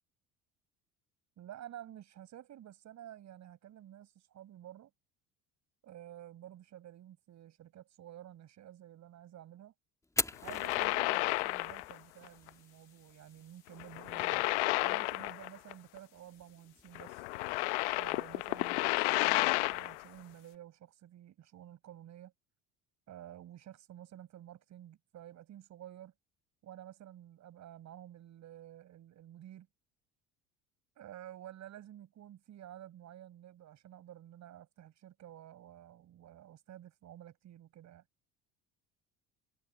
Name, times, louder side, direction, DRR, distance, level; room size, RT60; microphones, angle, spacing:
voice 1, 1.4-4.9 5.8-9.7 10.4-14.5 14.7-17.3 17.9-22.3 23.1-26.1 26.6-29.7 31.0-38.0, right 12 dB, 55° right, 6.3 m, -51 dB
Fire, 10.0-18.0, left 2 dB, 10° left, 1.6 m, -44 dB
sound 1, 10.3-12.0 12.3-12.5 13.8-15.7 16.0-16.1 17.0-20.0, left 22 dB, 85° left, 0.9 m, -32 dB
supercardioid pair, 85°, 34 cm